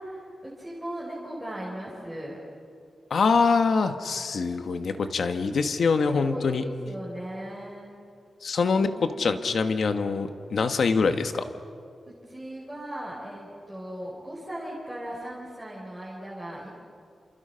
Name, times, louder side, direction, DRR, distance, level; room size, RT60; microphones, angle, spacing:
voice 1, 0.0-2.4 6.0-7.9 8.7-9.4 12.3-16.7, right 1 dB, 5° left, -6 dB, 4.6 m, -38 dB
voice 2, 3.1-6.6 8.4-11.4, left 4 dB, 65° left, 8 dB, 1.4 m, -24 dB
28.5 x 27.5 x 5.8 m, 2.4 s
wide cardioid pair, 170°, 0 cm